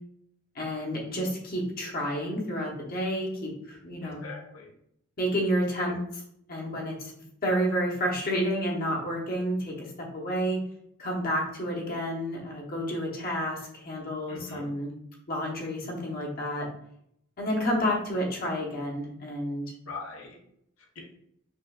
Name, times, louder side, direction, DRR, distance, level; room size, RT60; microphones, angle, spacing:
voice 1, 0.5-4.2 5.2-6.2 6.5-7.1 7.4-10.6 11.0-14.9 15.3-16.7 17.4-19.7, equal, 45° left, -1 dB, 1.0 m, -30 dB
voice 2, 4.0-4.7 14.3-14.7 19.8-20.4 20.9-21.0, left 3 dB, 80° left, -1 dB, 0.9 m, -41 dB
5.5 x 2.5 x 2.3 m, 0.73 s
head